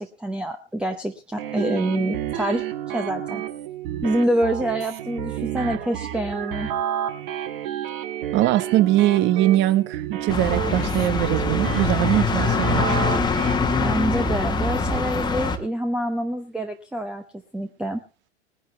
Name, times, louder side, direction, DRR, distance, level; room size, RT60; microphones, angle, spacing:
voice 1, 0.0-2.6 2.9-3.4 4.0-6.7 13.8-17.2 17.5-18.0, right 1 dB, 5° right, 0.8 m, -26 dB
sound 1, 1.4-13.5, right 11 dB, 50° right, 1.7 m, -30 dB
voice 2, 8.3-13.0, right 14 dB, 35° right, 1.0 m, -21 dB
sound 2, 10.3-15.6, left 3 dB, 15° left, 1.4 m, -23 dB
20.0 x 10.5 x 3.3 m
figure-of-eight pair, 95°, 33 cm